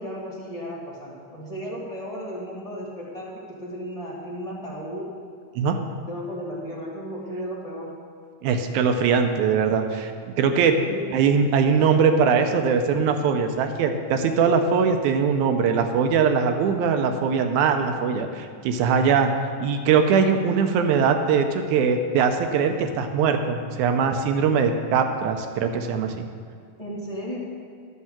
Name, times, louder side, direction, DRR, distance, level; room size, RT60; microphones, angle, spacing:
voice 1, 0.0-5.1 6.0-7.9 10.8-11.1 26.8-27.4, equal, 25° left, -6 dB, 0.8 m, -34 dB
voice 2, 8.4-10.8 11.1-19.3 19.6-26.3, right 6 dB, 80° right, 6 dB, 2.0 m, -21 dB
12.5 x 4.6 x 7.3 m, 2.1 s
omnidirectional pair, 3.7 m